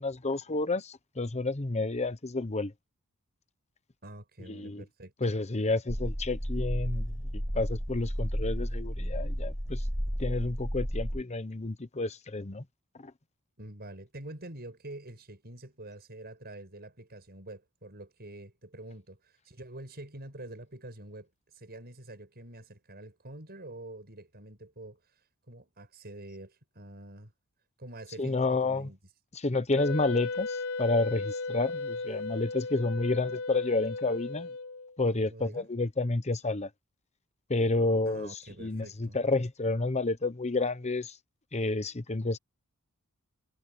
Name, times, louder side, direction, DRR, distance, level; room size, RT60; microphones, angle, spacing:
voice 1, 0.0-2.7 4.5-4.8 5.2-7.1 7.5-9.8 10.2-12.6 13.0-13.1 28.2-28.9 29.3-34.5 35.0-36.7 37.5-38.3 38.6-41.1 41.5-42.4, left 2 dB, 30° left, 1.0 m, -30 dB
voice 2, 4.0-5.1 13.6-25.0 25.5-27.3 27.8-29.0 35.1-35.7 38.1-39.2, right 1 dB, 45° right, 7.0 m, -46 dB
sound 1, 5.9-11.2, equal, ahead, 1.2 m, -32 dB
Wind instrument woodwind instrument, 29.8-34.9, left 3 dB, 90° left, 1.6 m, -36 dB
head